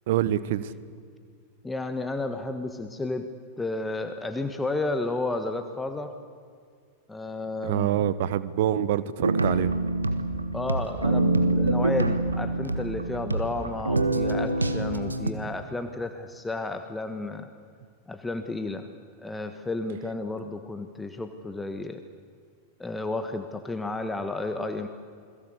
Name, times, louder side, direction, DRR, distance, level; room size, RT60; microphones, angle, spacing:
voice 1, 0.1-0.7 7.6-9.8, right 11 dB, 55° right, 16 dB, 1.1 m, -26 dB
voice 2, 1.6-3.3 3.6-6.1 7.1-8.0 10.5-17.5 18.1-18.9 19.2-22.0 22.8-24.9, left 2 dB, 10° left, 7 dB, 1.5 m, -32 dB
sound 1, 9.2-15.3, right 2 dB, 80° right, 1.6 m, -25 dB
28.5 x 21.5 x 8.3 m, 2.1 s
figure-of-eight pair, 90°, 0 cm